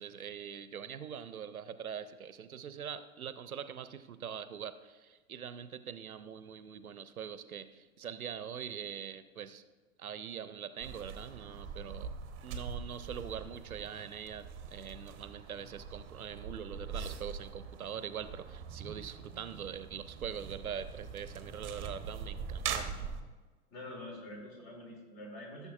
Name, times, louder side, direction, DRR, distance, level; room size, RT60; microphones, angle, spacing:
voice 1, 0.0-9.6 10.0-12.1 12.4-22.9, right 8 dB, 80° right, 13 dB, 0.6 m, -43 dB
sound 1, 10.8-23.2, right 6 dB, 30° right, 0.7 m, -43 dB
voice 2, 23.7-25.7, left 1 dB, 40° left, 0 dB, 2.5 m, -46 dB
13.5 x 6.8 x 2.3 m, 1.3 s
figure-of-eight pair, 90°, 43 cm